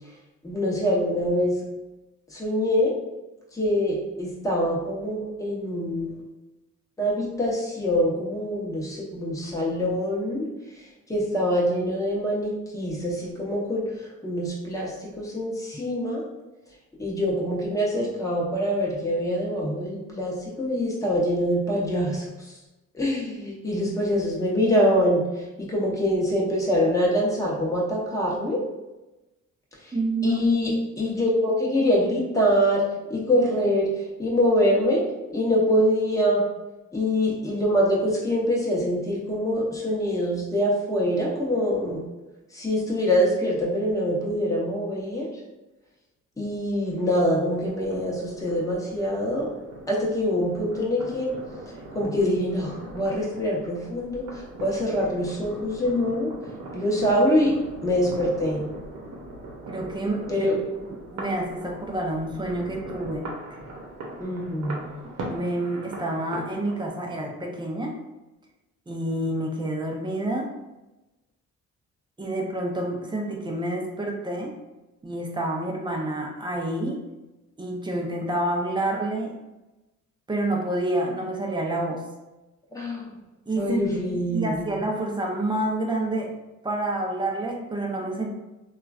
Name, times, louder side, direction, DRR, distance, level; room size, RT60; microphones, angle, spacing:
voice 1, 0.4-1.6 2.3-2.9 3.5-6.2 7.0-10.5 11.1-16.2 17.0-22.2 22.9-25.3 25.6-28.6 29.8-29.9 30.2-33.9 34.2-35.0 35.3-36.4 36.9-42.1 42.5-45.3 46.4-49.5 49.9-51.3 51.9-56.3 56.7-57.5 57.8-58.6 60.3-60.6 64.2-64.8 82.7-83.1 83.6-84.7, equal, 10° left, -4 dB, 0.9 m, -24 dB
voice 2, 29.9-30.4 59.7-60.5 60.8-63.3 65.3-68.0 68.9-70.5 72.2-74.5 75.0-77.0 77.6-79.3 80.3-82.0 83.5-86.3 86.6-88.3, right 1 dB, 15° right, 0 dB, 0.5 m, -28 dB
Yet More Fireworks, 47.5-66.9, right 2 dB, 90° right, 0.7 m, -40 dB
3.0 x 2.4 x 2.4 m, 1.0 s
cardioid pair, 90°, 30 cm